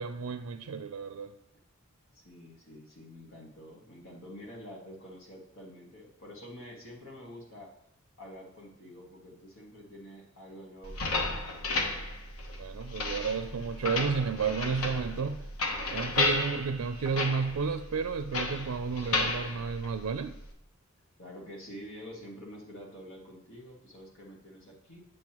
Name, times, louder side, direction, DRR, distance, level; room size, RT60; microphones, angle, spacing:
voice 1, 0.0-1.3 12.6-15.4 15.9-20.4, right 5 dB, 90° right, 8 dB, 0.4 m, -32 dB
voice 2, 2.1-7.7 8.2-11.8 21.2-25.0, equal, 65° left, -2 dB, 1.9 m, -48 dB
sound 1, 10.8-20.5, left 3 dB, 85° left, 1.1 m, -33 dB
7.9 x 7.6 x 3.0 m, 0.74 s
head